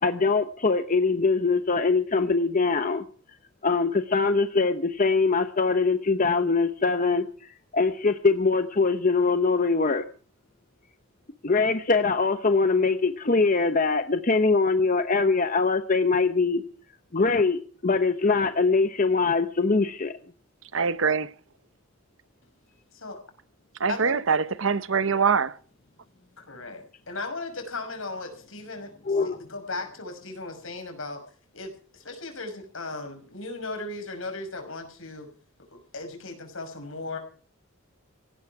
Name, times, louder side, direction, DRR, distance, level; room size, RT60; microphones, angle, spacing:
voice 1, 0.0-3.0 3.6-7.3 7.7-10.0 11.4-16.6 17.1-20.1 29.1-29.4, left 4 dB, 40° left, 0.9 m, -23 dB
voice 2, 20.7-21.3 23.8-25.6, right 5 dB, 70° right, 0.8 m, -24 dB
voice 3, 23.9-24.2 26.5-31.2 31.5-35.3 35.7-37.2, left 3 dB, 80° left, 5.8 m, -37 dB
18.5 x 16.5 x 4.8 m
head